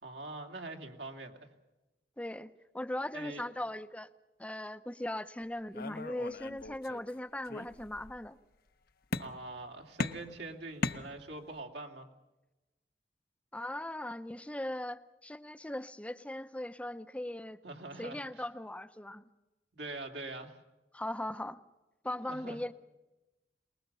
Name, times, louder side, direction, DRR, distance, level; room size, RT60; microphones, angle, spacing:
voice 1, 0.0-1.5 3.1-3.4 9.2-12.1 17.6-18.2 19.7-20.6 22.3-22.6, right 2 dB, 80° right, 2 dB, 2.8 m, -43 dB
voice 2, 2.2-4.1 4.4-8.4 13.5-17.6 18.0-19.2 20.9-21.6 22.0-22.7, left 1 dB, 10° left, 12 dB, 0.7 m, -39 dB
sound 1, 5.7-7.1 7.4-8.2 9.1-9.6 10.0-11.6, left 3 dB, 60° left, 0.8 m, -38 dB
24.0 x 20.5 x 6.8 m, 1.1 s
head